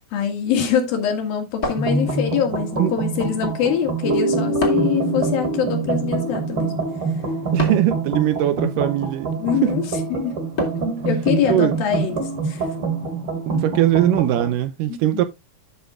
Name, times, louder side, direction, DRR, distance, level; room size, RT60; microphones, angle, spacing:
voice 1, 0.1-6.8 9.4-10.3 11.1-12.7 14.9-15.3, left 8 dB, 75° left, 3.8 m, -24 dB
sound 1, 1.6-2.5 4.6-5.1 7.6-8.0 10.6-11.0, left 3 dB, 25° left, 2.6 m, -28 dB
sound 2, 1.8-14.5, right 4 dB, 40° right, 3.0 m, -26 dB
sound 3, 4.0-7.6, right 1 dB, 5° right, 2.4 m, -26 dB
voice 2, 7.5-9.3 9.6-9.7 11.5-11.8 13.5-15.2, right 12 dB, 80° right, 2.1 m, -20 dB
12.5 x 6.6 x 2.4 m
omnidirectional pair, 4.2 m